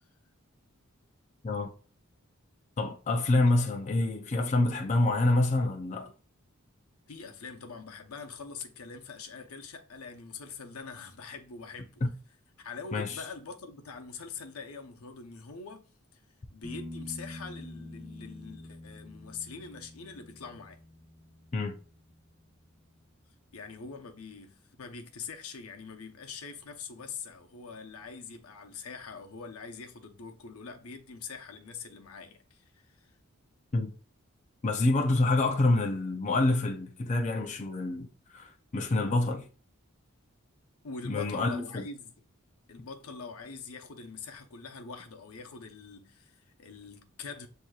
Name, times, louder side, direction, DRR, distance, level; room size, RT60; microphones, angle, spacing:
voice 1, 2.8-6.1 12.9-13.2 21.5-21.8 33.7-33.9 34.6-38.1 38.3-39.5 41.0-41.8, left 2 dB, 35° left, 0.5 m, -27 dB
voice 2, 7.1-12.0 12.6-15.9 16.1-16.2 16.5-20.8 23.5-33.1 40.8-42.1 42.7-47.5, left 5 dB, 85° left, 0.8 m, -44 dB
sound 1, 16.6-24.2 27.3-27.4, left 1 dB, 15° right, 1.1 m, -47 dB
7.7 x 2.8 x 2.3 m
head